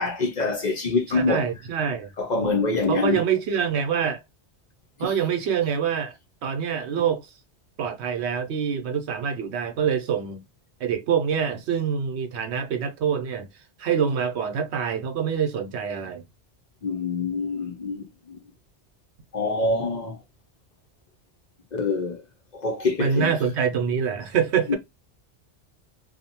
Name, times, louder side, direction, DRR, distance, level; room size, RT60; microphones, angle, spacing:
voice 1, 0.0-1.5 2.2-3.2 5.0-5.1 16.8-18.4 19.3-20.2 21.7-22.2 22.5-23.3 24.7-24.8, left 3 dB, 50° left, 0.6 m, -25 dB
voice 2, 1.1-2.1 2.9-4.2 5.0-6.2 6.4-7.3 7.8-10.4 10.8-13.5 13.8-16.2 23.0-24.8, right 7 dB, 75° right, 0.9 m, -25 dB
2.7 x 2.1 x 2.7 m
omnidirectional pair, 1.1 m